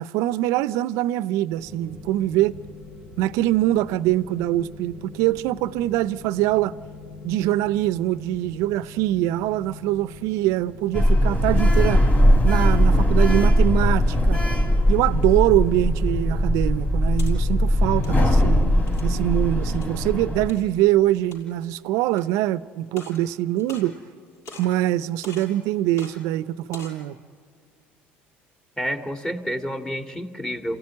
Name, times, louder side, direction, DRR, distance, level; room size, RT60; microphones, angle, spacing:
voice 1, 0.0-2.5 3.2-6.7 7.2-12.0 12.4-14.4 14.9-18.7 19.0-24.0 24.6-27.2, right 14 dB, 70° right, 0.6 m, -23 dB
sound 1, 1.5-20.4, left 1 dB, 80° left, 7.9 m, -42 dB
Sliding door, 10.9-20.5, equal, 30° left, 3.5 m, -19 dB
sound 2, 17.2-17.3 17.9-18.2 18.9-19.2 19.7-19.9 20.5-20.6 21.2-21.6 22.1-22.2 22.9-23.2 23.6-24.2 24.5-24.8 25.2-25.5 26.0-26.1 26.6-27.0, left 3 dB, 60° left, 6.3 m, -42 dB
voice 2, 28.8-30.8, equal, 10° left, 2.3 m, -29 dB
27.5 x 16.0 x 9.6 m
hypercardioid pair, 70°, 5 cm